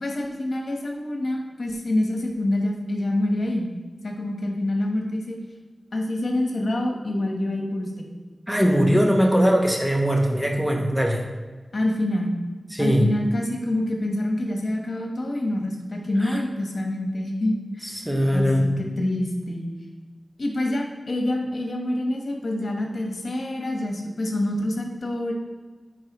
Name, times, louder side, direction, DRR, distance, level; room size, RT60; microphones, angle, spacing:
voice 1, 0.0-3.7 4.0-5.4 5.9-8.1 8.9-9.3 11.7-12.3 12.8-17.9 18.3-19.7 20.4-25.3, left 1 dB, 75° left, 1 dB, 1.2 m, -26 dB
voice 2, 8.5-11.3 12.7-13.1 16.2-16.4 17.9-18.7, equal, 10° right, 1 dB, 1.0 m, -21 dB
10.5 x 4.6 x 3.1 m, 1.4 s
wide cardioid pair, 75°, 0 cm